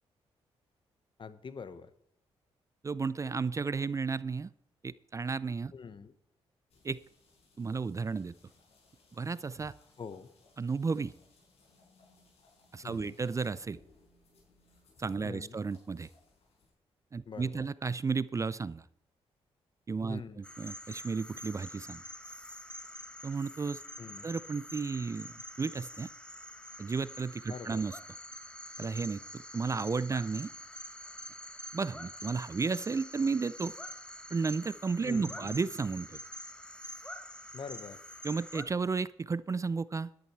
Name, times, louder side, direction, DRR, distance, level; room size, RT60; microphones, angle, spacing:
voice 1, 1.2-1.9 5.7-6.1 10.0-10.3 12.8-13.2 15.2-15.6 17.3-17.7 20.1-20.4 24.0-24.3 27.5-27.8 35.1-35.5 37.5-38.0, left 5 dB, 45° left, 14 dB, 1.0 m, -44 dB
voice 2, 2.8-4.5 4.8-5.7 6.8-7.0 7.6-8.3 9.2-9.7 10.6-11.1 12.7-13.8 15.0-16.1 17.1-18.8 19.9-22.0 23.2-23.8 24.2-26.1 26.8-28.0 28.8-30.5 31.7-33.7 34.3-36.2 38.2-40.1, right 4 dB, 30° right, 18 dB, 0.4 m, -33 dB
sound 1, 6.7-16.7, left 3 dB, 65° left, 6.0 m, -65 dB
sound 2, 20.4-38.6, left 1 dB, 10° left, 1.1 m, -46 dB
11.0 x 10.5 x 4.6 m, 0.74 s
cardioid pair, 65°, 11 cm